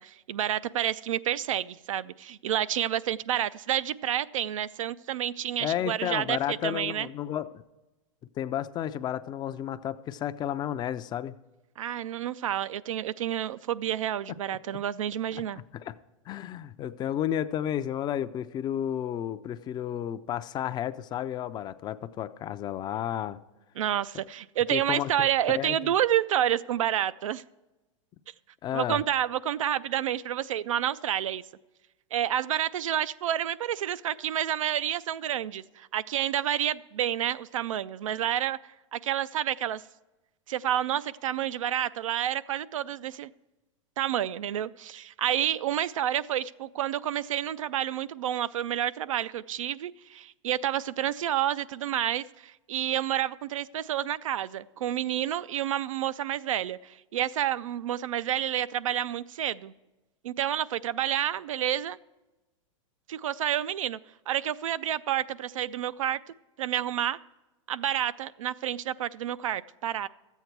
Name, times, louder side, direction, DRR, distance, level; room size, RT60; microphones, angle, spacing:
voice 1, 0.0-7.1 11.8-15.6 23.8-27.4 28.7-31.4 32.1-38.6 38.9-39.8 40.5-43.3 44.0-59.7 60.2-62.0 63.1-64.0 64.3-66.2 66.6-67.2 67.7-70.1, right 11 dB, 90° right, 0.4 m, -29 dB
voice 2, 5.6-7.5 8.4-11.3 14.7-14.8 15.5-15.9 16.3-23.4 24.7-25.9 28.6-29.0, left 10 dB, 25° left, 0.4 m, -32 dB
12.5 x 8.1 x 4.6 m
hypercardioid pair, 125°, 17 cm